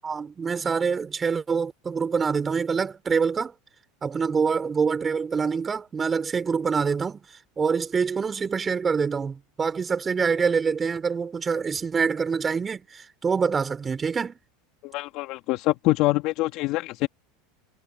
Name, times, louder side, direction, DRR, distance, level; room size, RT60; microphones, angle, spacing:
voice 1, 0.0-3.5 4.0-7.2 7.6-14.4, right 5 dB, 25° right, 4.7 m, -25 dB
voice 2, 14.8-17.1, left 20 dB, 55° left, 2.3 m, -25 dB
hypercardioid pair, 95°, 0 cm